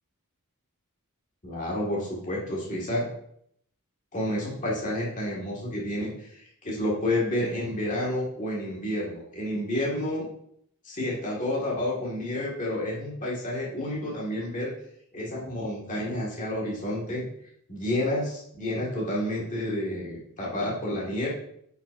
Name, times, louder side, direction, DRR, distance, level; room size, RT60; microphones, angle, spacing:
voice 1, 1.4-3.1 4.1-10.3 10.8-14.7 15.1-17.3 17.7-21.3, left 1 dB, 35° left, -4 dB, 1.8 m, -30 dB
9.0 x 5.7 x 2.6 m, 0.70 s
head